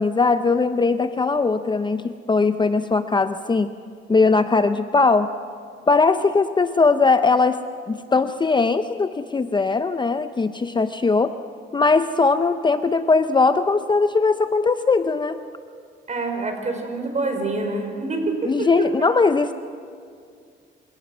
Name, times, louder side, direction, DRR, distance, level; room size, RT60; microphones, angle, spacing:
voice 1, 0.0-3.7 4.1-5.3 5.9-7.6 7.9-11.3 11.7-15.4 18.5-19.5, left 4 dB, 25° left, 10 dB, 0.7 m, -20 dB
voice 2, 16.1-18.9, right 3 dB, 35° right, 4 dB, 5.0 m, -26 dB
26.5 x 17.0 x 6.2 m, 2.2 s
cardioid pair, 90°, 20 cm